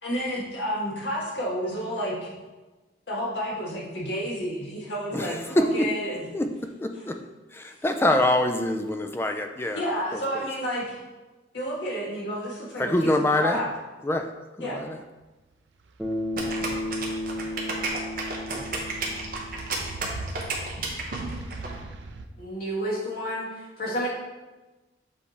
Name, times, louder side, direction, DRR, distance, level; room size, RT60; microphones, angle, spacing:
voice 1, 0.0-2.3 3.1-6.3 6.9-7.1 9.7-11.0 11.5-13.7 14.6-14.8, equal, 70° left, -5 dB, 1.7 m, -30 dB
voice 2, 6.8-7.1 7.6-9.8 12.8-13.6 14.1-14.3 14.6-14.9, left 1 dB, 10° left, 6 dB, 0.3 m, -24 dB
sound 1, 15.8-22.3, right 2 dB, 70° right, 0.5 m, -40 dB
Bass guitar, 16.0-20.4, left 1 dB, 5° right, 0.7 m, -34 dB
sound 2, 16.3-21.7, right 3 dB, 50° right, 1.0 m, -32 dB
voice 3, 22.4-23.5 23.8-24.1, equal, 50° left, -5 dB, 1.8 m, -30 dB
7.2 x 3.4 x 4.2 m, 1.2 s
head